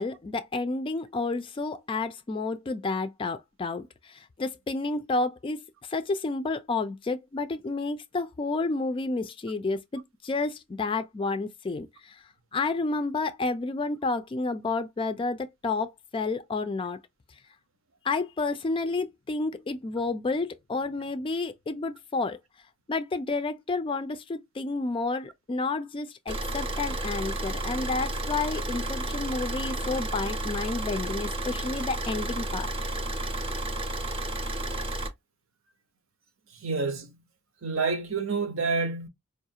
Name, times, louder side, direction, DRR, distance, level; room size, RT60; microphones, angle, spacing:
voice 1, 0.0-17.0 17.3-17.4 18.0-22.4 22.9-32.7, left 3 dB, 25° left, 0.3 m, -30 dB
Car / Idling, 26.3-35.1, right 1 dB, 25° right, 0.6 m, -32 dB
voice 2, 36.6-37.2 37.6-39.1, right 4 dB, 75° right, 0.8 m, -28 dB
4.7 x 2.3 x 2.7 m
head